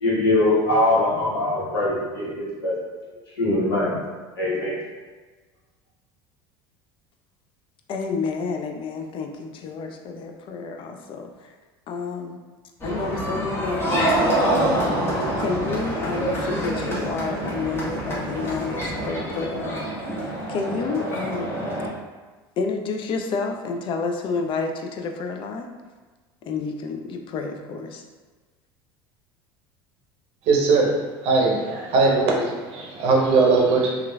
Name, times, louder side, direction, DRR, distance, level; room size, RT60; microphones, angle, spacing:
voice 1, 0.0-2.8 3.4-4.0 4.4-4.8, left 2 dB, 85° left, -6 dB, 0.9 m, -22 dB
voice 2, 7.9-11.5 11.9-12.4 12.8-14.9 15.4-20.2 20.5-21.5 22.6-25.7 26.4-28.0, left 4 dB, 45° left, 5 dB, 0.4 m, -30 dB
sound 1, 12.8-21.9, right 1 dB, 20° left, 1.0 m, -26 dB
voice 3, 30.5-30.9 31.2-34.0, right 3 dB, 55° right, -1 dB, 0.6 m, -20 dB
3.0 x 2.3 x 2.2 m, 1.3 s
hypercardioid pair, 80°, 13 cm